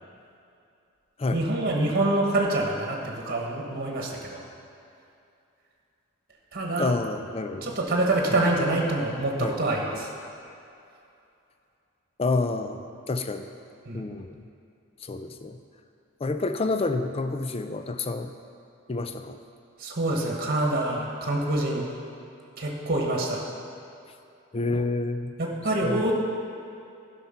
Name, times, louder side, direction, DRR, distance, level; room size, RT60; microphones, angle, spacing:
voice 1, 1.3-4.4 6.5-6.9 7.6-10.1 13.9-14.0 19.8-21.9 22.6-23.4 25.4-26.1, right 2 dB, 45° right, 0 dB, 1.3 m, -26 dB
voice 2, 6.8-7.7 8.3-8.5 9.4-9.6 12.2-13.5 13.9-14.4 15.0-15.6 16.2-18.3 18.9-19.4 24.5-25.3 25.8-26.1, left 3 dB, 25° left, 8 dB, 0.4 m, -29 dB
11.0 x 5.8 x 5.7 m, 2.6 s
head